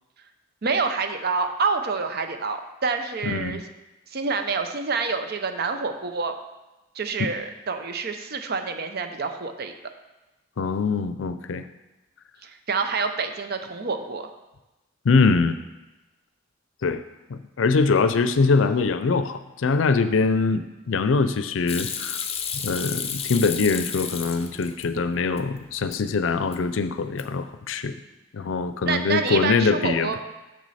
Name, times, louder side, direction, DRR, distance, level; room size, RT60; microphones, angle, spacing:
voice 1, 0.6-3.6 4.1-6.3 6.9-9.7 12.4-14.3 28.8-30.2, right 4 dB, 55° right, 7 dB, 0.6 m, -27 dB
voice 2, 3.2-3.6 10.6-11.6 15.0-15.6 16.8-17.0 17.3-22.2 22.6-27.9 28.3-30.2, left 4 dB, 80° left, 11 dB, 0.5 m, -23 dB
Hands / Sink (filling or washing), 21.7-24.9 25.2-26.0 26.3-26.8 27.1-27.5, left 7 dB, 30° left, 0.6 m, -32 dB
6.8 x 6.2 x 4.2 m, 1.0 s
head